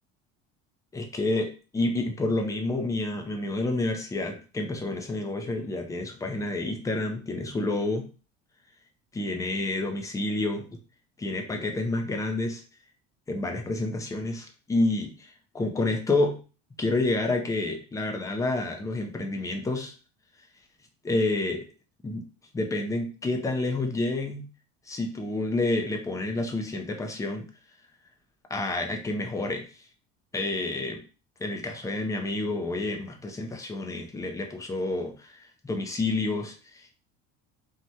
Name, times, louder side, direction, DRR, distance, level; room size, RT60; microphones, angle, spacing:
voice 1, 0.9-8.1 9.1-10.7 11.2-12.6 13.3-16.4 16.8-19.9 21.0-21.7 22.0-22.2 22.5-24.5 24.9-27.5 28.5-29.7 30.3-31.0 31.4-37.0, left 2 dB, 10° left, 4 dB, 0.5 m, -29 dB
3.0 x 2.3 x 2.7 m, 0.35 s
cardioid pair, 125°, 30 cm